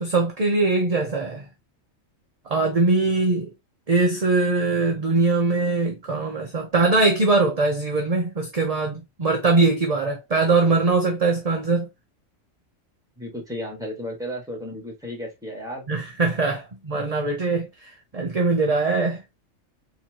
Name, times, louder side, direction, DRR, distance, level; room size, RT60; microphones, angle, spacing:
voice 1, 0.0-1.4 2.5-3.5 3.9-11.9 15.9-19.2, right 3 dB, 35° right, 0.7 m, -22 dB
voice 2, 13.2-16.0, equal, 5° right, 1.6 m, -34 dB
4.2 x 2.9 x 2.9 m
omnidirectional pair, 1.4 m